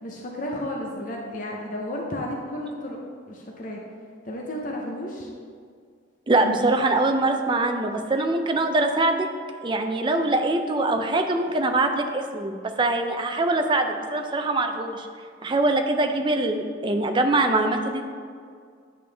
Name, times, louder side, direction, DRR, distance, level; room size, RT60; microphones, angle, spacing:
voice 1, 0.0-3.0 3.3-3.8 4.2-5.3, left 1 dB, 40° left, -1 dB, 0.7 m, -32 dB
voice 2, 6.3-9.3 9.6-15.1 15.4-18.0, right 2 dB, 25° right, 5 dB, 0.4 m, -23 dB
8.9 x 5.3 x 3.3 m, 2.1 s
head